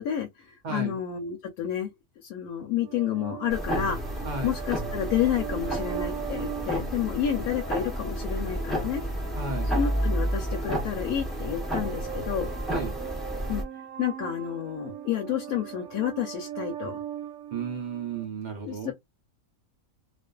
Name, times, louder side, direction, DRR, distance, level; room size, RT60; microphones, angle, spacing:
voice 1, 0.0-4.0 4.4-9.0 9.7-12.5 13.5-13.6 14.0-17.0 18.6-18.9, left 9 dB, 85° left, 1.1 m, -30 dB
voice 2, 0.6-1.0 4.2-4.5 9.4-9.7 12.7-13.0 17.5-18.9, right 4 dB, 60° right, 0.4 m, -33 dB
sound 1, 2.8-18.2, right 8 dB, 80° right, 1.1 m, -40 dB
sound 2, 3.5-13.6, equal, ahead, 0.6 m, -31 dB
2.5 x 2.4 x 2.2 m
omnidirectional pair, 1.5 m